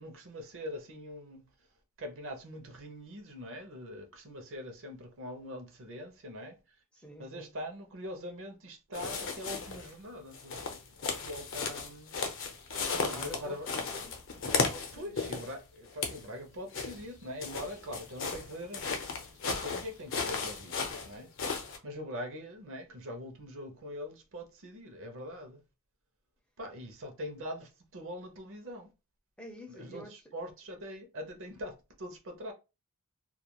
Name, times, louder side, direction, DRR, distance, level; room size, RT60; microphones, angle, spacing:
voice 1, 0.0-1.5 2.0-6.6 7.2-12.1 12.7-13.7 14.9-21.3 21.8-25.6 26.6-28.9 29.7-32.5, equal, 60° right, 0.7 m, -43 dB
voice 2, 6.9-7.5 12.7-15.2 29.4-30.2, equal, 5° left, 0.5 m, -48 dB
sound 1, 8.9-9.9 10.3-15.5 15.9-16.3 16.7-21.8, left 4 dB, 60° left, 0.6 m, -35 dB
2.4 x 2.2 x 2.9 m
head